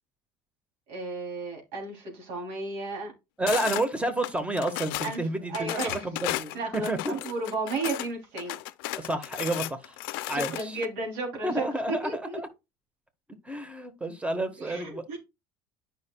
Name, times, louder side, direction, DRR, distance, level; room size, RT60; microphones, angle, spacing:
voice 1, 0.9-3.1 5.0-5.2 5.5-6.0 6.5-8.6 10.3-12.4 14.6-15.2, right 3 dB, 75° right, 3.1 m, -33 dB
voice 2, 3.4-7.1 9.0-9.9 10.3-10.8 11.4-12.5 13.4-15.0, right 1 dB, 10° right, 1.4 m, -30 dB
sound 1, 3.5-3.9 4.2-5.2 5.5-8.1 8.4-10.9, left 17 dB, 80° left, 0.4 m, -34 dB
9.5 x 5.8 x 2.3 m
supercardioid pair, 85°, 12 cm